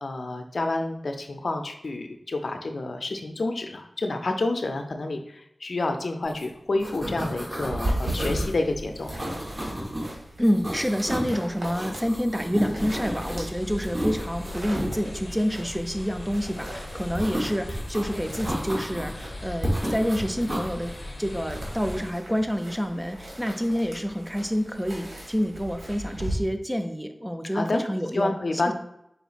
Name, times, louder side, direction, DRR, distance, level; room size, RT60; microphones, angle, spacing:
voice 1, 0.0-9.1 27.5-27.8 28.1-28.7, left 2 dB, 75° left, 5 dB, 0.5 m, -29 dB
sound 1, 6.3-6.4 6.7-8.5 9.1-10.1 10.4-11.3 11.6-13.5 13.8-14.9 17.1-18.0 18.4-19.2 19.6-20.7 21.5-21.9, equal, 25° right, 1.1 m, -32 dB
sound 2, 7.7-26.3, right 1 dB, 85° right, 1.5 m, -38 dB
voice 2, 10.4-20.9 21.2-28.4 28.6-28.7, equal, 5° right, 6 dB, 0.4 m, -28 dB
sound 3, 12.8-22.1, left 1 dB, 55° left, 0.8 m, -39 dB
4.4 x 4.0 x 2.4 m, 0.80 s
wide cardioid pair, 70°, 0 cm